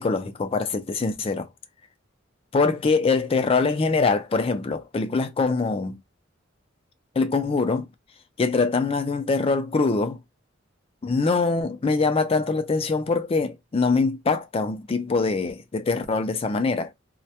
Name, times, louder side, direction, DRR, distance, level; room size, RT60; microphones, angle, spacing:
voice 1, 0.0-1.5 2.5-6.0 7.2-7.9 8.4-10.2 11.0-16.9, left 4 dB, 30° left, 0.4 m, -23 dB
2.2 x 2.1 x 2.8 m
head